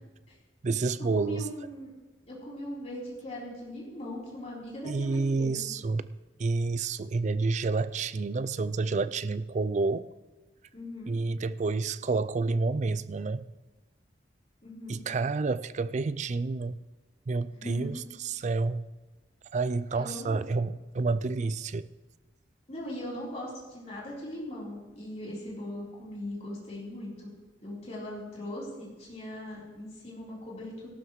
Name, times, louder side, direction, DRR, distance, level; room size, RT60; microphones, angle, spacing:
voice 1, 0.6-1.5 4.9-10.1 11.1-13.5 14.9-16.8 17.3-18.9 19.5-21.9, right 3 dB, 40° right, 0.4 m, -29 dB
voice 2, 1.2-1.9 2.3-5.6 10.7-11.2 14.6-15.0 17.5-17.9 19.9-20.5 22.7-27.3 27.6-30.9, left 1 dB, 40° left, 3.9 m, -40 dB
17.0 x 12.5 x 3.2 m
head